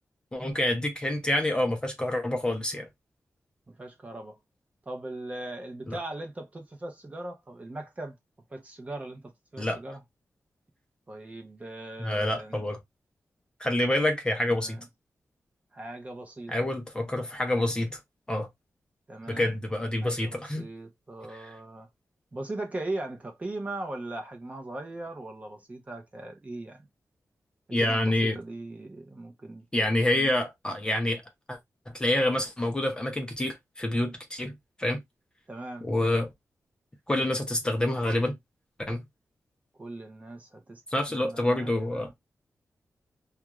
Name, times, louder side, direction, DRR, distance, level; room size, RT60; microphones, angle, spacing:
voice 1, 0.3-2.9 5.9-6.0 9.6-9.8 12.0-12.8 13.6-14.8 16.5-18.0 18.3-18.5 19.3-20.7 21.3-21.5 27.7-28.4 29.7-31.2 31.5-31.6 31.9-34.5 34.8-35.0 35.8-36.3 37.1-38.4 38.9-39.0 40.9-42.1, left 1 dB, 15° left, 0.6 m, -27 dB
voice 2, 3.7-4.4 4.9-8.2 8.5-10.0 11.1-12.6 14.4-14.9 15.7-16.7 19.1-19.5 20.0-21.9 22.3-26.9 27.8-29.7 30.0-30.3 35.5-35.9 39.8-42.1, right 2 dB, 25° right, 0.6 m, -39 dB
2.4 x 2.3 x 3.0 m
wide cardioid pair, 165°, 6 cm